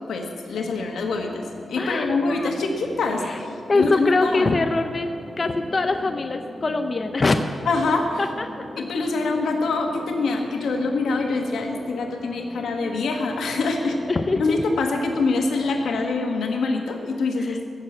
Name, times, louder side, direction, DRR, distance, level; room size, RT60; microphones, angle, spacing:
voice 1, 0.1-4.6 7.6-8.2 8.7-14.0 14.4-17.7, left 3 dB, 90° left, 3 dB, 1.6 m, -25 dB
sound 1, 0.5-16.1, left 1 dB, 20° left, 1.4 m, -40 dB
voice 2, 1.8-2.5 3.3-3.4 3.7-5.1 5.4-7.5 8.2-8.5 14.1-14.6 17.4-17.6, left 3 dB, 35° left, 6 dB, 0.6 m, -23 dB
16.0 x 6.6 x 7.5 m, 2.5 s
wide cardioid pair, 110°, 0 cm